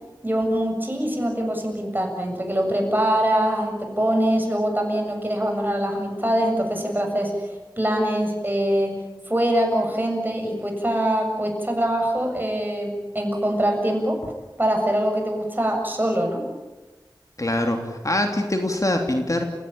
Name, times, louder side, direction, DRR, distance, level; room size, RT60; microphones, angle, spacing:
voice 1, 0.2-8.9 9.3-14.2 14.6-16.5, right 1 dB, 25° right, 2 dB, 7.3 m, -23 dB
voice 2, 17.4-19.5, left 1 dB, 40° left, 4 dB, 3.0 m, -23 dB
30.0 x 17.0 x 8.8 m, 1.1 s
wide cardioid pair, 50°, 8 cm